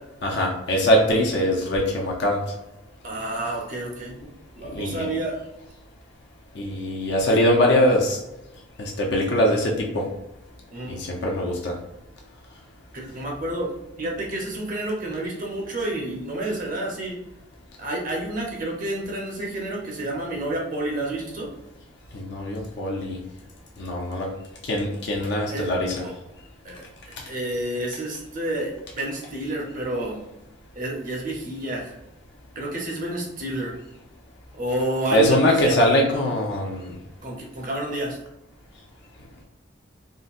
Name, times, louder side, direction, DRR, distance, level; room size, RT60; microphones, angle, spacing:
voice 1, 0.2-2.4 4.7-5.1 6.5-8.2 8.8-10.0 10.9-11.7 22.1-23.2 23.8-24.3 24.6-26.1 35.1-36.9, equal, 55° left, -2 dB, 0.5 m, -22 dB
voice 2, 3.0-4.1 4.6-5.3 10.7-11.0 12.9-13.7 14.0-17.2 17.8-21.5 25.5-25.7 26.0-26.1 26.6-30.2 30.7-32.0 32.6-33.7 34.6-35.8 37.2-38.2, right 1 dB, 40° right, -2 dB, 0.8 m, -29 dB
3.8 x 2.1 x 2.5 m, 0.91 s
head